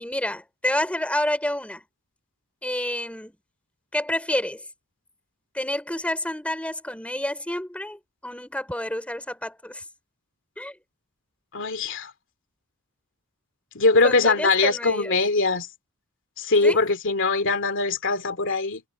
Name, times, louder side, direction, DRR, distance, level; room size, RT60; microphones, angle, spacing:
voice 1, 0.0-1.8 2.6-3.4 3.9-4.6 5.5-9.8 10.6-10.8 14.0-15.2 16.6-16.8, left 1 dB, 5° left, 3.9 m, -29 dB
voice 2, 11.5-12.1 13.7-15.7 16.4-18.8, left 3 dB, 60° left, 2.6 m, -22 dB
head